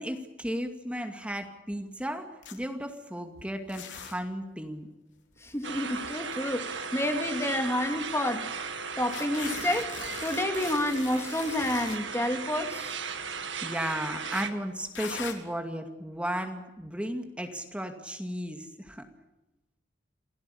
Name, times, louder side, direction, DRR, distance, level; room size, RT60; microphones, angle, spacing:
voice 1, 0.0-4.9 13.4-19.1, equal, 5° right, 2.2 m, -35 dB
sound 1, 2.4-2.6 3.7-4.1 5.3-6.3 7.0-7.1 7.5-7.6 9.1-12.0 12.9-13.2 14.3-14.4 14.9-15.3, left 6 dB, 85° left, 3.8 m, -40 dB
voice 2, 5.4-8.5 9.0-13.0, left 1 dB, 15° left, 2.3 m, -29 dB
sound 2, 5.6-14.5, right 5 dB, 85° right, 2.4 m, -37 dB
28.0 x 18.0 x 8.6 m
head